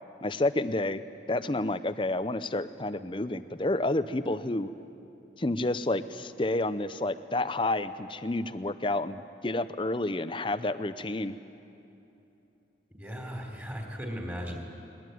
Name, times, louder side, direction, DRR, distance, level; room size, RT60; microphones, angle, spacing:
voice 1, 0.2-1.0 1.3-4.7 5.4-11.4, left 2 dB, 30° left, 13 dB, 0.7 m, -30 dB
voice 2, 13.0-14.6, equal, 10° right, 1 dB, 3.3 m, -37 dB
21.5 x 20.5 x 9.3 m, 2.9 s
head